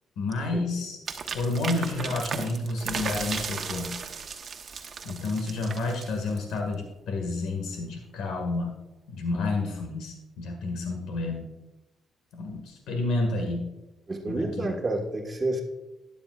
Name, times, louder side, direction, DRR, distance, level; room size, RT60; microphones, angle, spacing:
voice 1, 0.2-1.0 1.3-3.9 5.0-8.7 9.1-11.5 12.3-13.7 14.3-14.7, left 2 dB, 85° left, 2 dB, 1.8 m, -30 dB
sound 1, 1.1-6.6, right 5 dB, 50° right, 1.1 m, -35 dB
voice 2, 14.1-15.6, right 2 dB, 30° right, 2 dB, 1.5 m, -29 dB
12.5 x 10.5 x 2.4 m, 0.98 s
cardioid pair, 90°, 0 cm